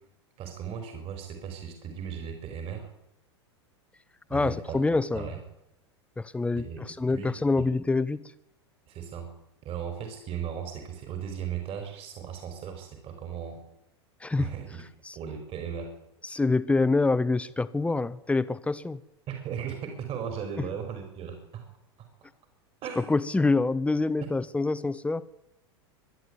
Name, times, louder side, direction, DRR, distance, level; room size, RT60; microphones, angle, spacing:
voice 1, 0.4-2.9 4.3-4.8 5.1-5.4 6.5-6.8 7.1-7.7 8.9-9.3 9.6-13.6 14.4-14.8 15.1-15.9 19.3-21.7 22.0-22.1 22.8-23.2, right 8 dB, 45° right, 6 dB, 5.1 m, -37 dB
voice 2, 4.3-5.3 6.2-8.3 14.2-14.5 15.0-15.2 16.2-19.0 20.6-20.7 23.0-25.3, left 3 dB, 10° left, 15 dB, 1.2 m, -26 dB
23.5 x 11.5 x 9.8 m, 0.91 s
hypercardioid pair, 95°, 14 cm